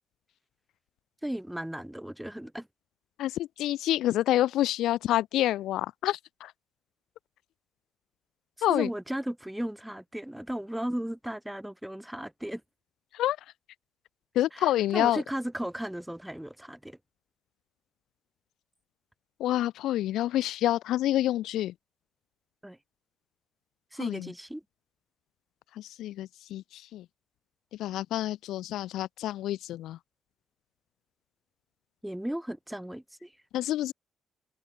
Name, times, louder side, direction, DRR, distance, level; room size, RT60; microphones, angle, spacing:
voice 1, 1.2-2.7 8.7-12.6 14.5-17.0 22.6-22.8 23.9-24.6 32.0-33.3, right 1 dB, 5° right, 1.9 m, -35 dB
voice 2, 3.2-6.5 8.6-8.9 13.1-13.4 14.3-15.2 19.4-21.7 24.0-24.3 25.7-27.1 27.8-30.0 33.5-33.9, left 13 dB, 85° left, 0.4 m, -28 dB
cardioid pair, 120°, 0 cm